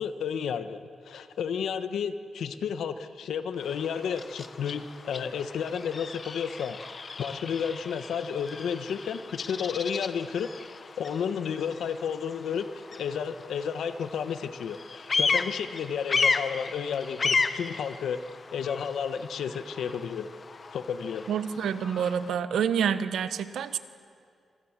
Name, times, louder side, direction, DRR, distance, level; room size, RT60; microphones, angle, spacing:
voice 1, 0.0-6.8 7.2-10.5 11.0-18.2 18.5-20.3 20.7-21.3, left 7 dB, 85° left, 10 dB, 1.1 m, -32 dB
Bird vocalization bird call bird song, 3.5-22.3, left 4 dB, 35° left, 0.8 m, -34 dB
voice 2, 21.3-23.8, right 8 dB, 90° right, 11 dB, 1.1 m, -28 dB
26.0 x 25.0 x 7.4 m, 2.3 s
wide cardioid pair, 130°, 0 cm